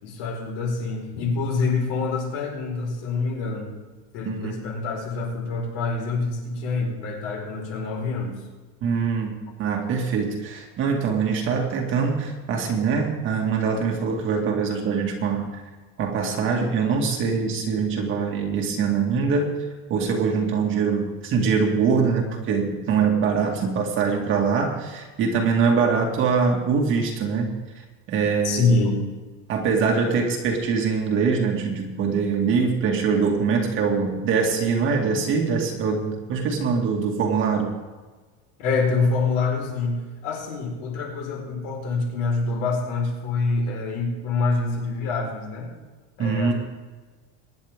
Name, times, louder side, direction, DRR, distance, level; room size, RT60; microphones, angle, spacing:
voice 1, 0.0-3.8 4.1-8.4 28.4-29.0 38.6-45.7 46.2-46.5, left 3 dB, 60° left, 0 dB, 4.7 m, -26 dB
voice 2, 4.2-4.6 8.8-15.6 16.0-19.6 19.9-27.5 28.1-28.7 29.5-37.7 46.2-46.5, right 5 dB, 35° right, 1 dB, 2.1 m, -23 dB
23.5 x 10.5 x 3.7 m, 1.3 s
cardioid pair, 175°, 35 cm